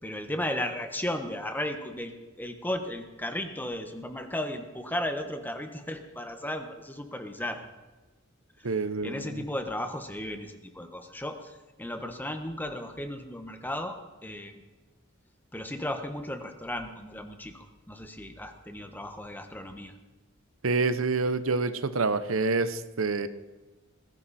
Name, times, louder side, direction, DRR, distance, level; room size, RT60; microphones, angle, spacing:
voice 1, 0.0-7.6 8.6-8.7 9.0-14.6 15.5-19.9, left 1 dB, 10° left, 6 dB, 1.4 m, -35 dB
voice 2, 8.6-9.4 20.6-23.3, right 3 dB, 90° right, 12 dB, 0.9 m, -27 dB
20.0 x 16.0 x 4.3 m, 1.2 s
head